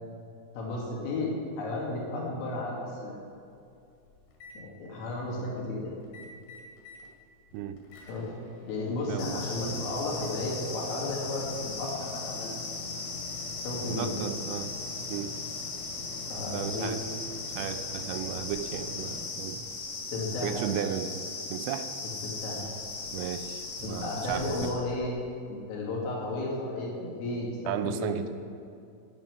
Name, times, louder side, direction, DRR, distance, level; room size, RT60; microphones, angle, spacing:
voice 1, 0.6-3.2 4.6-5.9 8.1-8.3 8.7-12.6 13.6-14.2 16.3-16.9 20.1-20.7 22.2-22.7 23.8-25.2 25.5-28.2, left 2 dB, 90° left, -4 dB, 5.1 m, -33 dB
Microwave oven, 3.6-4.6 6.0-7.1 7.5-19.3, left 5 dB, 70° left, 4.2 m, -46 dB
voice 2, 9.1-9.4 9.7-9.8 13.9-14.7 15.1-15.4 16.5-17.0 17.6-19.7 20.4-21.9 23.1-24.8 27.7-28.3, right 10 dB, 90° right, 9 dB, 3.3 m, -35 dB
sound 1, 9.2-24.7, left 3 dB, 50° left, 3.5 m, -38 dB
11.0 x 10.5 x 9.7 m, 2.5 s
omnidirectional pair, 5.7 m